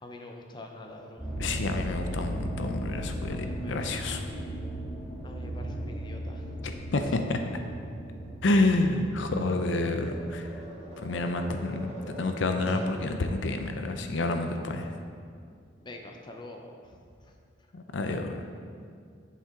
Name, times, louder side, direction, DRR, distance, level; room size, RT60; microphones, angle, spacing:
voice 1, 0.0-1.2 3.3-3.7 5.2-6.6 7.3-7.4 15.8-17.3, left 2 dB, 25° left, 2 dB, 0.6 m, -45 dB
sound 1, 1.2-13.5 14.0-14.4 15.0-15.1 15.4-15.5, right 1 dB, 10° left, 2.0 m, -38 dB
voice 2, 1.4-4.3 6.6-7.4 8.4-10.6 11.0-14.9 17.7-18.4, left 2 dB, 75° left, 6 dB, 0.6 m, -29 dB
Tap, 5.4-12.9, equal, 35° right, 1.7 m, -44 dB
8.4 x 7.5 x 3.7 m, 2.3 s
head